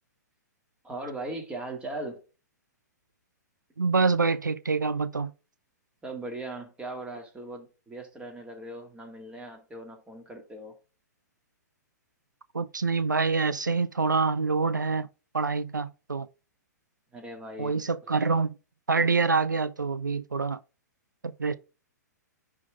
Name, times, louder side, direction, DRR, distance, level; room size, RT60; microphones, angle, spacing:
voice 1, 0.8-2.2 6.0-10.8 17.1-17.9, right 2 dB, 10° right, 2.2 m, -39 dB
voice 2, 3.8-5.3 12.5-15.1 15.3-16.3 17.6-18.5 18.9-20.6 21.2-21.5, right 4 dB, 85° right, 0.4 m, -26 dB
10.5 x 3.7 x 3.5 m
figure-of-eight pair, 115°, 10 cm